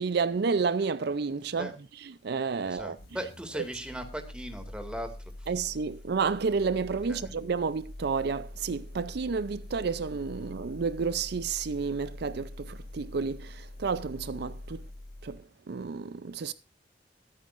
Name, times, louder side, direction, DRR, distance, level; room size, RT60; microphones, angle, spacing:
voice 1, 0.0-1.7 2.2-3.0 5.5-14.9 15.2-16.5, right 5 dB, 60° right, 0.5 m, -30 dB
voice 2, 2.6-5.5 7.1-7.3, equal, 5° right, 2.3 m, -38 dB
sound 1, 2.8-15.4, left 1 dB, 55° left, 0.8 m, -45 dB
23.5 x 9.1 x 2.5 m
head